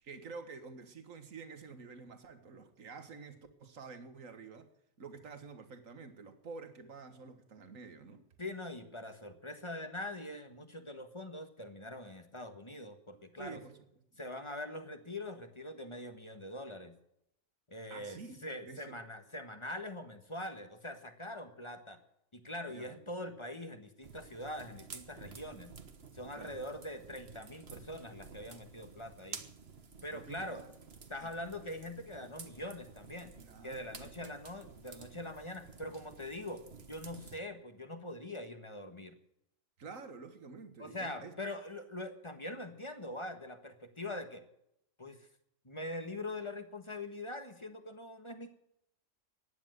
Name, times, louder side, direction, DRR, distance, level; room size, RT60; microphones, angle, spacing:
voice 1, 0.0-4.7 5.0-8.2 13.4-13.8 14.1-14.2 17.9-18.9 22.7-23.0 26.3-26.7 30.1-30.7 31.2-31.3 33.4-34.2 39.8-41.4, right 4 dB, 70° right, 2.0 m, -49 dB
voice 2, 8.4-13.6 14.2-17.0 17.7-22.0 22.3-25.7 26.1-29.4 30.0-30.6 31.1-33.3 33.6-39.2 40.8-44.5 45.0-45.3 45.6-48.5, left 1 dB, 20° left, 1.5 m, -43 dB
sound 1, 24.0-37.4, right 5 dB, 50° right, 1.5 m, -52 dB
15.5 x 10.0 x 7.9 m
omnidirectional pair, 1.4 m